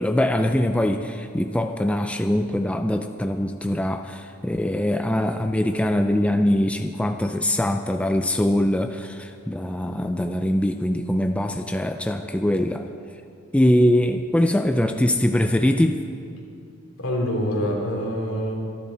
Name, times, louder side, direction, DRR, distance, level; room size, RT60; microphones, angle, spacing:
voice 1, 0.0-12.9 13.5-16.0, left 1 dB, 5° left, 6 dB, 0.4 m, -22 dB
voice 2, 17.0-18.6, equal, 65° left, -1 dB, 3.3 m, -25 dB
25.0 x 11.0 x 4.3 m, 2.4 s
head